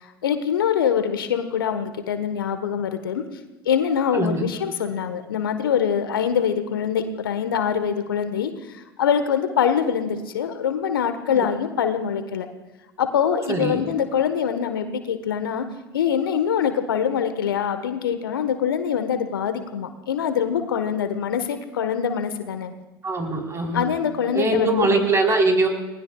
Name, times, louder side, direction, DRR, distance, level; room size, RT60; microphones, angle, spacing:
voice 1, 0.2-3.2 3.6-12.5 13.0-15.7 15.9-22.7 23.7-24.9, left 8 dB, 70° left, 9 dB, 1.4 m, -24 dB
voice 2, 4.1-4.5 11.3-11.4 13.5-13.8 23.0-23.9 24.3-25.7, right 2 dB, 25° right, 2 dB, 4.0 m, -22 dB
30.0 x 19.5 x 2.4 m, 1.1 s
figure-of-eight pair, 75°, 12 cm